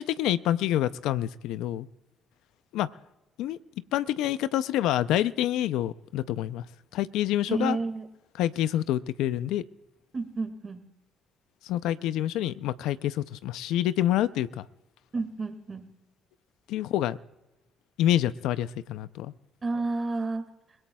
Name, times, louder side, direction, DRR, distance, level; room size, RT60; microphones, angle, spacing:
voice 1, 0.0-1.9 2.7-2.9 3.4-3.6 3.9-6.6 6.9-7.8 8.4-9.6 11.6-14.6 16.7-17.2 18.0-19.3, left 12 dB, 85° left, 16 dB, 0.4 m, -27 dB
voice 2, 7.5-8.1 10.1-10.9 15.1-15.9 19.6-20.5, right 3 dB, 35° right, 8 dB, 1.9 m, -31 dB
30.0 x 17.5 x 2.3 m, 1.0 s
cardioid pair, 85°, 0 cm